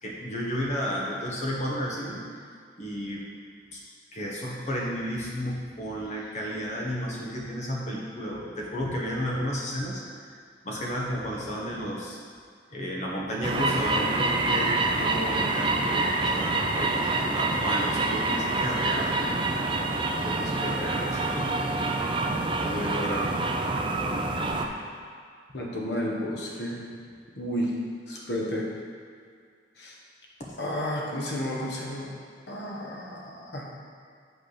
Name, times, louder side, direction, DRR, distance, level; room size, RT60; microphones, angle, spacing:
voice 1, 0.0-2.2 2.8-3.2 3.7-3.8 4.1-10.4 10.6-12.2 12.7-19.2 20.2-21.4 22.6-23.3 30.4-30.6, equal, 40° left, -3 dB, 1.4 m, -32 dB
sound 1, 13.4-24.7, right 2 dB, 30° right, 0.5 m, -27 dB
voice 2, 25.5-26.8 27.4-27.8 28.1-28.7 29.8-30.0 30.6-32.1 32.5-33.7, equal, 70° left, -2 dB, 1.3 m, -32 dB
8.1 x 3.7 x 6.6 m, 2.1 s
head